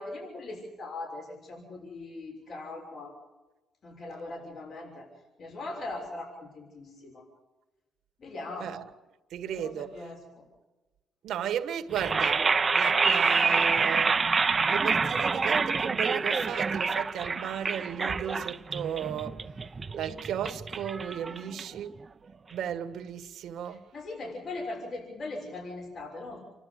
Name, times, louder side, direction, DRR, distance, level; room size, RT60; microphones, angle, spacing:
voice 1, 0.0-3.1 3.8-5.1 5.4-7.2 8.2-8.7 9.4-10.4 21.3-21.6 23.6-26.4, left 2 dB, 60° left, 6.5 m, -40 dB
voice 2, 9.3-9.9 11.2-12.4 12.7-14.2 14.7-19.3 19.9-21.9 22.5-23.8, right 9 dB, 75° right, 1.7 m, -34 dB
sound 1, 11.9-22.0, right 4 dB, 30° right, 0.9 m, -27 dB
28.5 x 13.0 x 8.3 m
cardioid pair, 90°, 0 cm